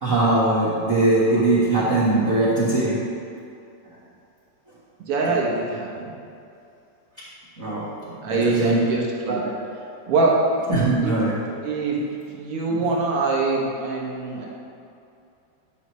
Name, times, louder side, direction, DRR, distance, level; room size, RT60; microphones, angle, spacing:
voice 1, 0.0-3.0 7.6-7.9 8.2-8.8 9.3-9.4 10.7-11.3 12.7-12.8, right 2 dB, 45° right, -10 dB, 1.1 m, -21 dB
voice 2, 5.1-6.1 8.2-9.5 10.1-10.4 11.0-11.1 11.6-12.0 12.3-14.5, right 3 dB, 60° right, -3 dB, 1.7 m, -23 dB
11.0 x 6.5 x 3.1 m, 2.6 s
omnidirectional pair, 3.4 m